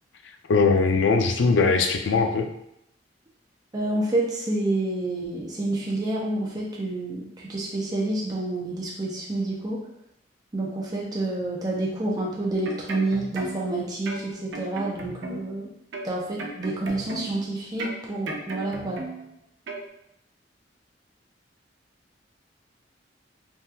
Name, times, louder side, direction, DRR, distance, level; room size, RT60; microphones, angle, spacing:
voice 1, 0.5-2.5, left 4 dB, 80° left, 5 dB, 0.4 m, -20 dB
voice 2, 3.7-9.8 10.5-15.7 16.0-19.0, right 2 dB, 20° right, -4 dB, 0.4 m, -28 dB
sound 1, 12.4-13.7 14.0-15.6 15.9-17.4 17.8-19.3 19.7-19.8, right 2 dB, 80° right, 0.5 m, -36 dB
3.5 x 2.3 x 2.7 m, 0.77 s
head